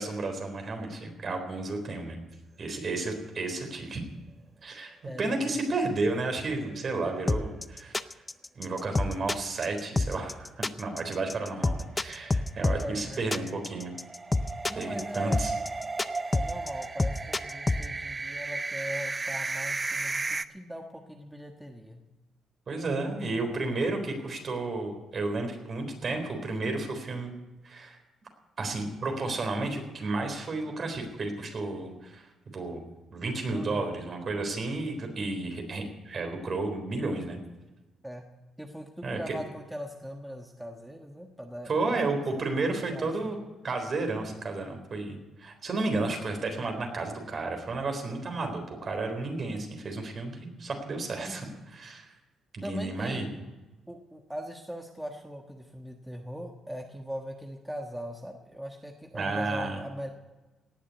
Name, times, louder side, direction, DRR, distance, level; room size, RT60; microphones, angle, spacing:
voice 1, 0.0-2.2 2.6-4.0 4.6-8.1 8.6-13.9 14.7-15.5 22.7-27.3 27.6-28.0 28.6-32.3 32.5-32.8 33.1-37.4 39.0-39.4 41.7-43.4 43.6-52.1 52.5-53.3 59.1-59.8, right 3 dB, 45° right, 4 dB, 3.9 m, -32 dB
voice 2, 5.0-5.5 12.8-13.5 14.4-15.5 16.3-22.0 33.5-33.9 38.0-38.2 38.6-42.2 42.5-43.3 51.2-51.5 52.6-53.2 53.9-60.1, equal, 5° right, 3 dB, 1.4 m, -40 dB
sound 1, 5.5-6.4 6.8-6.9 7.2-7.3 11.4-20.5, right 3 dB, 25° right, 0.6 m, -35 dB
sound 2, 7.3-17.8, left 2 dB, 20° left, 0.6 m, -27 dB
18.5 x 7.4 x 9.5 m, 1.1 s
cardioid pair, 90°, 0 cm